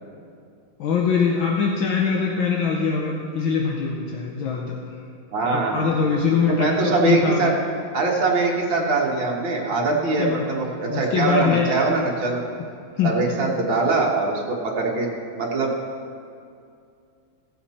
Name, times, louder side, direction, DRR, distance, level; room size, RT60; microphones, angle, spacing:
voice 1, 0.8-4.8 5.5-7.5 9.9-10.4 10.9-11.7 13.0-13.1, left 6 dB, 70° left, -1 dB, 1.6 m, -23 dB
voice 2, 5.3-6.2 6.5-7.5 7.9-12.4 13.0-15.1 15.4-15.7, right 3 dB, 65° right, -2 dB, 2.3 m, -22 dB
16.5 x 7.8 x 4.3 m, 2.4 s
omnidirectional pair, 2.3 m